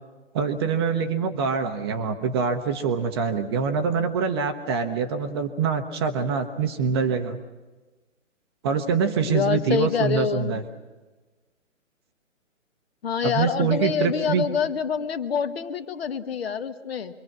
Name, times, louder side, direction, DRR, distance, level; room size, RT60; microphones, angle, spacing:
voice 1, 0.3-7.4 8.6-10.6 13.2-14.5, right 6 dB, 20° right, 7 dB, 0.8 m, -25 dB
voice 2, 9.2-10.6 13.0-17.1, left 7 dB, 50° left, 10 dB, 1.4 m, -26 dB
26.5 x 23.0 x 6.0 m, 1.2 s
hypercardioid pair, 150°, 39 cm